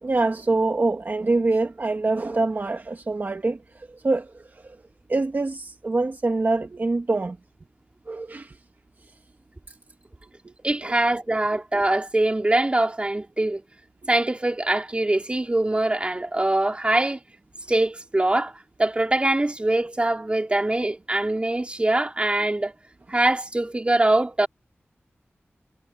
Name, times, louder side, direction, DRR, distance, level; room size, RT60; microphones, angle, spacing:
voice 1, 0.0-4.8 5.1-7.4 8.1-8.6 10.4-10.5 10.8-10.9, right 3 dB, 45° right, 1.6 m, -25 dB
voice 2, 10.6-13.6 14.0-17.2 17.7-18.5 18.8-22.7 23.1-24.5, right 2 dB, 25° right, 2.8 m, -23 dB
wide cardioid pair, 85°, 4 cm